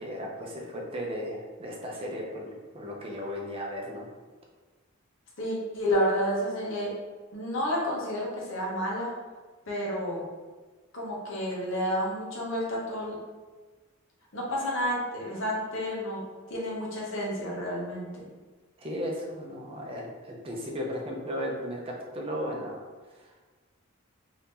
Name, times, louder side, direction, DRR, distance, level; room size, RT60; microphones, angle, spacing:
voice 1, 0.0-4.1 18.8-22.8, equal, 30° right, -1 dB, 0.6 m, -35 dB
voice 2, 5.4-6.9 7.3-9.1 9.7-10.3 10.9-13.2 14.3-16.2 16.5-18.2, equal, 65° left, -4 dB, 1.0 m, -30 dB
2.8 x 2.7 x 3.6 m, 1.3 s
head